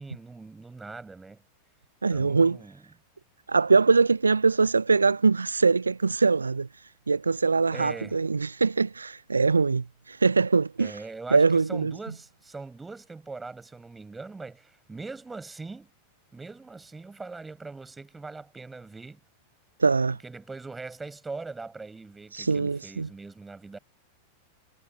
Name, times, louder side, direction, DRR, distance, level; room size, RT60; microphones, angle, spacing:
voice 1, 0.0-1.4 2.1-2.8 7.7-8.2 10.8-15.9 16.3-19.2 20.2-23.8, right 3 dB, 10° right, 7.3 m, -41 dB
voice 2, 2.0-2.6 3.5-11.0 11.3-11.9 19.8-20.2 22.3-23.1, right 4 dB, 75° right, 0.3 m, -23 dB
figure-of-eight pair, 90°, 0 cm